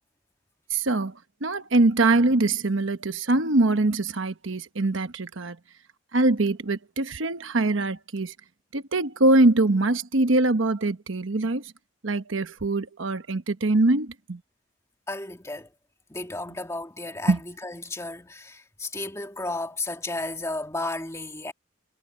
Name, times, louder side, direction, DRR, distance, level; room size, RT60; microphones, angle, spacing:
voice 1, 0.7-1.1 1.4-5.6 6.1-8.3 8.7-11.6 12.0-14.4 17.3-17.4, right 2 dB, 65° right, 1.1 m, -23 dB
voice 2, 15.1-15.7 16.1-21.5, left 2 dB, 15° left, 2.2 m, -33 dB
head